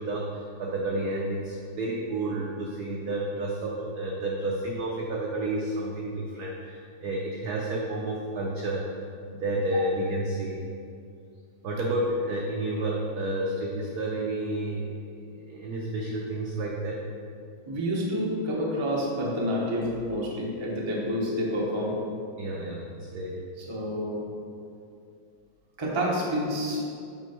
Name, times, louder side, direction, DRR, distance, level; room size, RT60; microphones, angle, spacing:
voice 1, 0.0-8.8 9.3-10.6 11.6-17.1 22.4-23.3, right 1 dB, 90° right, -2 dB, 0.8 m, -30 dB
voice 2, 17.7-22.0 23.7-24.2 25.8-26.8, equal, 45° right, -4 dB, 0.3 m, -28 dB
6.1 x 4.4 x 4.3 m, 2.4 s
omnidirectional pair, 2.4 m